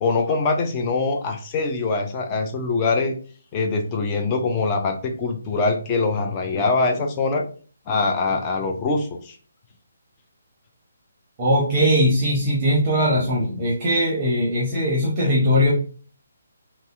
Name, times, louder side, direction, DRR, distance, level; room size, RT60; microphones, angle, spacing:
voice 1, 0.0-3.2 3.5-7.5 7.9-9.3, left 3 dB, 20° left, 3 dB, 0.5 m, -23 dB
voice 2, 11.4-15.7, equal, 20° right, -4 dB, 0.8 m, -20 dB
5.3 x 2.0 x 2.5 m, 0.42 s
figure-of-eight pair, 140°, 0 cm